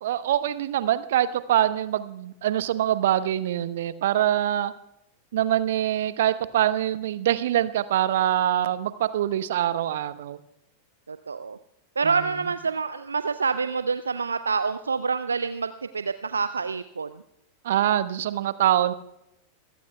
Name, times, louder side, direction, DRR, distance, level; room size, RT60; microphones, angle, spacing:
voice 1, 0.0-4.7 5.3-10.4 12.0-12.3 17.6-18.9, right 12 dB, 55° right, 14 dB, 0.9 m, -24 dB
voice 2, 11.1-11.6 12.0-17.2, right 5 dB, 75° right, 12 dB, 0.5 m, -27 dB
26.5 x 16.5 x 2.3 m, 0.84 s
figure-of-eight pair, 90°, 0 cm